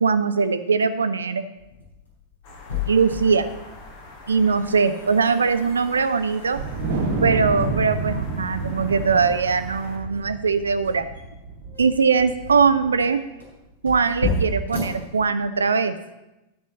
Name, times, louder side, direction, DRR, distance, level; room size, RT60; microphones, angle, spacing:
voice 1, 0.0-1.4 2.9-3.5 4.3-6.6 7.2-11.1 11.8-13.2 13.8-15.9, right 5 dB, 70° right, 11 dB, 0.5 m, -21 dB
sound 1, 1.6-15.7, left 3 dB, 70° left, 3.7 m, -35 dB
sound 2, 2.4-10.0, left 2 dB, 50° left, 2.1 m, -44 dB
Wind, 6.5-13.1, right 3 dB, 55° right, 1.2 m, -29 dB
10.5 x 5.6 x 7.5 m, 1.0 s
figure-of-eight pair, 90°, 0 cm